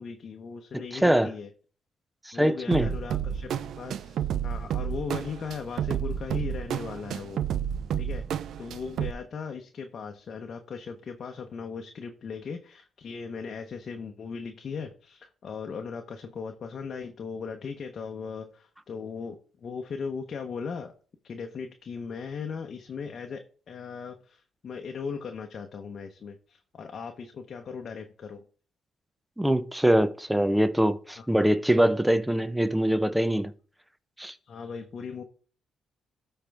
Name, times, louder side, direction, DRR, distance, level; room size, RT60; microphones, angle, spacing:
voice 1, 0.0-1.5 2.3-7.4 8.0-8.2 8.6-20.9 21.2-28.4 31.2-31.3 31.8-31.9 34.4-35.2, left 5 dB, 50° left, 0.9 m, -38 dB
voice 2, 0.7-1.3 2.3-2.9 29.4-33.5 34.2-34.3, right 1 dB, 5° right, 0.8 m, -23 dB
sound 1, 2.7-9.1, right 9 dB, 70° right, 0.5 m, -31 dB
13.0 x 4.5 x 3.5 m
cardioid pair, 90°, 0 cm